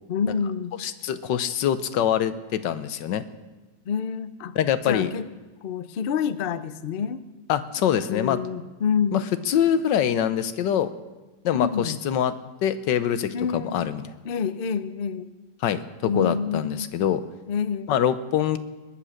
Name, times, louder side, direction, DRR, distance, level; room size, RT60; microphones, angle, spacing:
voice 1, 0.1-0.8 3.9-4.6 4.8-5.3 5.6-7.2 8.1-9.3 11.5-12.0 13.3-13.9 14.2-15.3 16.0-16.9 17.5-17.9, left 6 dB, 70° left, 13 dB, 0.5 m, -28 dB
voice 2, 0.8-3.2 4.6-5.1 7.5-8.4 9.1-9.2 9.5-10.9 11.4-12.3 12.6-14.0 15.6-17.2 17.9-18.6, left 9 dB, 85° left, 12 dB, 1.5 m, -24 dB
20.5 x 8.8 x 6.5 m, 1.2 s
omnidirectional pair, 1.9 m